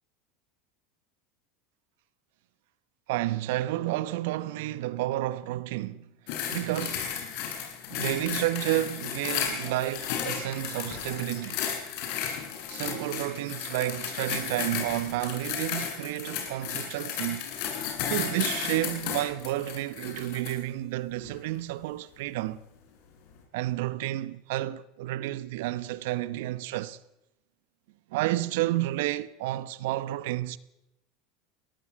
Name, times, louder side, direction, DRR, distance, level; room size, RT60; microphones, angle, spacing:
voice 1, 3.1-6.0 6.5-7.1 7.9-11.6 12.7-17.5 18.0-22.6 23.5-27.0 28.1-30.6, right 15 dB, 70° right, 1.0 m, -31 dB
sound 1, 6.3-20.6 21.2-21.4, left 8 dB, 60° left, 6.8 m, -34 dB
21.5 x 18.0 x 7.7 m
hypercardioid pair, 85°, 0 cm